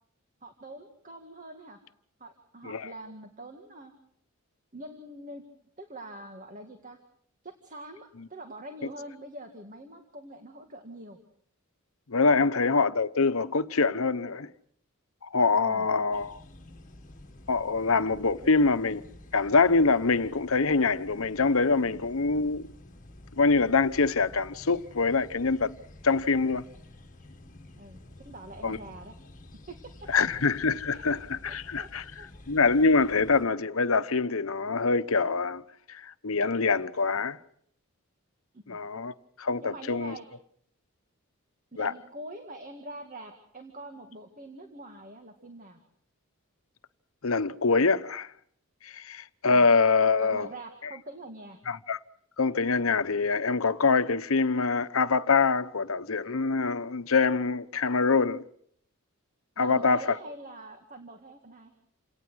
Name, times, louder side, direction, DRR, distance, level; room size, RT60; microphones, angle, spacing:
voice 1, 0.4-1.8 2.2-3.9 4.7-5.4 5.8-7.0 7.4-11.2 12.4-12.6 15.7-15.9 27.8-29.1 29.7-30.1 30.9-31.1 31.4-32.3 38.5-38.8 39.6-40.3 41.7-45.8 50.2-51.6 59.6-61.7, right 1 dB, 35° right, 2.0 m, -44 dB
voice 2, 12.1-14.5 15.2-16.4 17.5-19.0 19.3-22.7 23.4-25.7 26.0-26.6 28.6-28.8 30.1-32.0 32.5-35.6 35.9-37.4 38.7-40.1 41.8-41.9 47.2-48.3 48.8-50.5 51.7-52.0 52.4-58.4 59.6-60.2, left 4 dB, 75° left, 1.0 m, -25 dB
sound 1, 16.1-33.4, left 1 dB, 35° left, 1.9 m, -50 dB
28.5 x 18.5 x 6.3 m
head